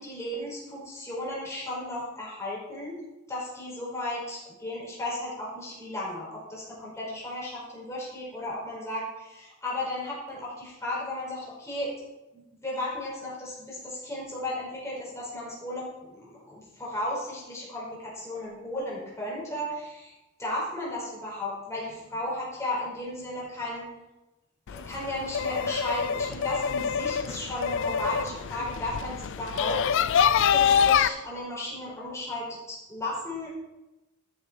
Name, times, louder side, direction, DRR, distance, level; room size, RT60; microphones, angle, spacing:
voice 1, 0.0-3.0 3.3-11.9 12.3-20.1 20.4-23.9 24.7-30.2 30.5-33.5, left 1 dB, 15° left, -6 dB, 4.9 m, -35 dB
sound 1, 24.7-31.1, left 7 dB, 60° left, 0.4 m, -25 dB
13.5 x 7.8 x 4.6 m, 1.0 s
head